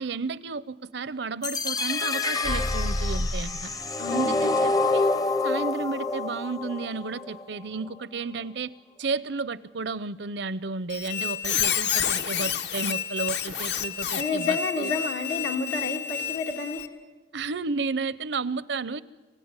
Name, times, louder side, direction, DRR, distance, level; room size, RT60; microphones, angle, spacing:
voice 1, 0.0-3.7 4.1-5.1 5.4-8.7 9.0-14.9 17.3-19.0, right 4 dB, 70° right, 18 dB, 0.7 m, -32 dB
sound 1, 1.4-7.4, left 3 dB, 20° left, 0.6 m, -27 dB
sound 2, 2.4-3.7, left 1 dB, 40° left, 1.0 m, -29 dB
voice 2, 4.0-4.5 14.2-16.9, left 4 dB, 85° left, 2 dB, 2.5 m, -30 dB
Squeak, 10.9-16.9, left 9 dB, 70° left, 1.2 m, -29 dB
27.5 x 16.0 x 9.7 m, 1.3 s
head